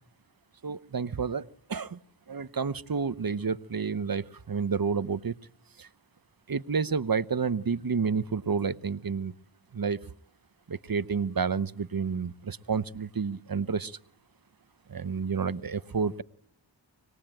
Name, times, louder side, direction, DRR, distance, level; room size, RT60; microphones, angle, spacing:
voice 1, 0.6-2.0 2.3-5.3 5.8-5.9 6.5-9.3 9.7-10.0 10.7-14.0 14.9-16.2, right 5 dB, 50° right, 16 dB, 1.0 m, -30 dB
25.0 x 21.0 x 9.1 m, 0.68 s
cardioid pair, 40°, 45 cm